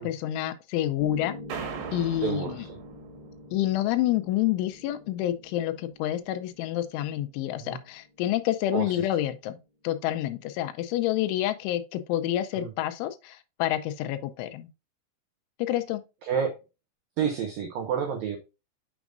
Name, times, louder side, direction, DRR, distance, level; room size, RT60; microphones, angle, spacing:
voice 1, 0.0-1.4 1.9-2.6 3.5-9.6 9.8-14.7 15.6-16.0, left 13 dB, 80° left, 3.0 m, -28 dB
Piano, 1.0-9.1, left 2 dB, 40° left, 1.6 m, -46 dB
sound 1, 1.5-3.9, right 7 dB, 65° right, 3.3 m, -40 dB
voice 2, 2.2-2.7 7.6-7.8 8.7-9.0 12.6-12.7 16.3-16.5 17.2-18.4, right 7 dB, 80° right, 2.0 m, -29 dB
7.2 x 7.0 x 2.5 m
omnidirectional pair, 5.6 m